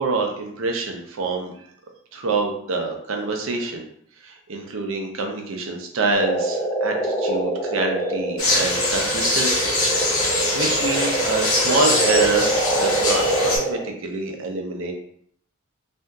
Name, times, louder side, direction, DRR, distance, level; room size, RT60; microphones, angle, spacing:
voice 1, 0.0-1.5 2.1-3.9 4.2-9.7 10.2-10.3 10.5-14.9, right 3 dB, 70° right, 2 dB, 0.5 m, -26 dB
sound 1, 6.1-13.9, right 1 dB, 5° left, 0.4 m, -25 dB
sound 2, 8.4-13.6, left 2 dB, 85° left, 0.9 m, -23 dB
2.8 x 2.6 x 2.3 m, 0.66 s
head